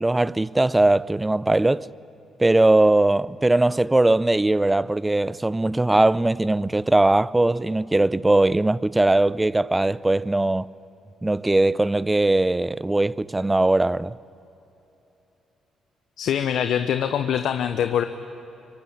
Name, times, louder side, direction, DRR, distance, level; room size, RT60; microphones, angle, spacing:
voice 1, 0.0-1.9 2.4-10.7 11.2-14.2, right 2 dB, 15° right, 0.6 m, -20 dB
voice 2, 16.2-18.0, left 9 dB, 75° left, 0.9 m, -23 dB
24.5 x 23.0 x 10.0 m
supercardioid pair, 65°, 0 cm